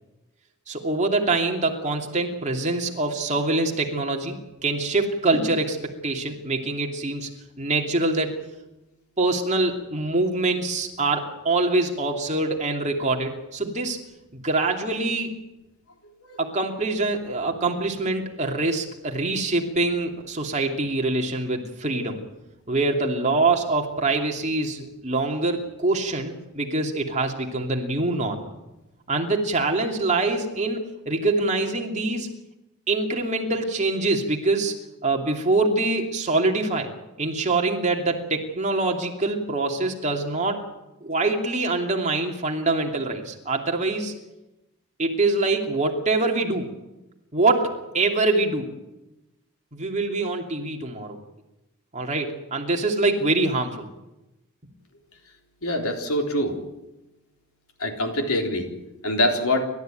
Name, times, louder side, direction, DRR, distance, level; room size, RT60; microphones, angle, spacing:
voice 1, 0.7-7.3 7.6-8.4 9.2-14.0 14.4-15.3 16.4-22.2 22.7-28.5 29.1-32.3 32.9-34.7 35.0-36.9 37.2-40.6 41.0-44.1 45.0-46.7 47.3-48.7 49.7-51.2 51.9-53.9, right 2 dB, 30° right, 2 dB, 2.7 m, -24 dB
voice 2, 55.6-56.6 57.8-58.7 59.0-59.7, left 1 dB, 75° left, 3 dB, 3.8 m, -24 dB
29.5 x 13.5 x 9.1 m, 0.99 s
head